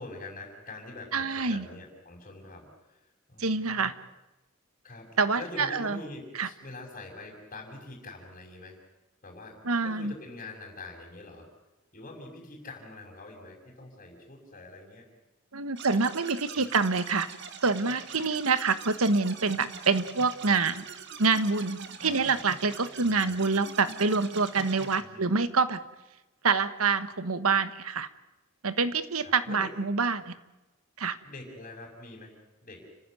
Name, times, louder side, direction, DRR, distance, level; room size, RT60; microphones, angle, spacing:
voice 1, 0.0-3.0 3.3-3.9 4.8-5.1 5.4-8.8 9.2-11.5 11.9-15.1 16.5-16.7 22.0-22.3 23.0-23.4 25.0-25.2 29.2-29.7 31.2-32.3 32.6-32.9, left 2 dB, 35° left, -2 dB, 6.1 m, -45 dB
voice 2, 1.1-1.6 3.4-3.9 5.2-6.0 6.3-6.5 9.6-10.1 15.5-17.3 17.6-20.8 21.2-25.8 26.4-28.1 28.6-30.3 31.0-31.2, right 4 dB, 85° right, 13 dB, 1.4 m, -26 dB
sound 1, 15.8-25.0, right 6 dB, 55° right, 2.0 m, -43 dB
30.0 x 15.5 x 9.3 m, 1.0 s
head